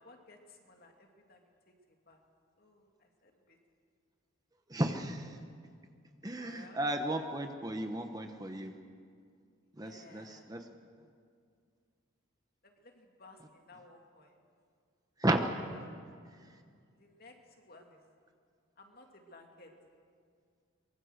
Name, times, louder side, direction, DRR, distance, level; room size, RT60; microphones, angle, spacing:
voice 1, 0.0-1.5 2.1-2.2 2.6-3.6 6.3-6.8 9.7-10.5 12.6-14.4 17.0-18.0 18.8-19.7, left 2 dB, 45° left, 2 dB, 2.6 m, -57 dB
voice 2, 4.7-5.4 6.2-8.7 9.8-10.7 15.2-15.5 16.4-16.6, right 1 dB, 15° right, 5 dB, 1.0 m, -34 dB
23.5 x 23.5 x 6.5 m, 2.2 s
head